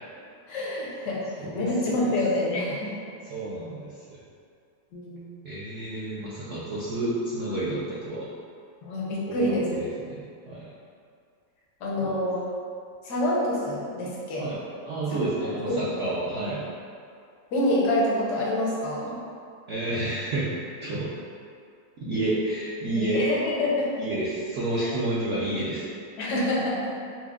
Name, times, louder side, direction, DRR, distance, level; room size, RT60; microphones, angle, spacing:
voice 1, 0.5-2.9 4.9-5.3 8.8-9.6 11.8-12.4 13.0-14.5 15.1-15.2 15.7-15.8 17.5-19.1 22.9-23.9 26.2-26.9, left 1 dB, 75° left, -5 dB, 1.3 m, -27 dB
voice 2, 1.4-2.0 3.2-4.2 5.4-8.3 9.3-10.7 12.0-12.2 14.4-14.6 14.9-16.6 19.7-20.5 20.8-21.1 22.0-23.2 24.0-25.8, right 2 dB, 70° right, -9 dB, 0.7 m, -30 dB
5.8 x 2.0 x 2.4 m, 2.3 s
omnidirectional pair, 1.8 m